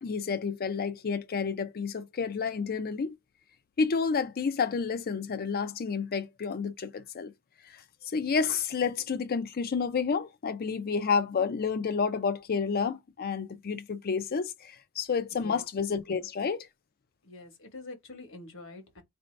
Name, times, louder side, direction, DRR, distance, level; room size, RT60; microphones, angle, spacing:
voice 1, 0.0-3.1 3.8-7.3 7.6-7.8 8.1-16.7, left 5 dB, 45° left, 0.4 m, -30 dB
voice 2, 15.3-15.6 16.1-16.2 17.2-19.0, left 2 dB, 65° left, 1.2 m, -46 dB
4.3 x 2.6 x 3.2 m
head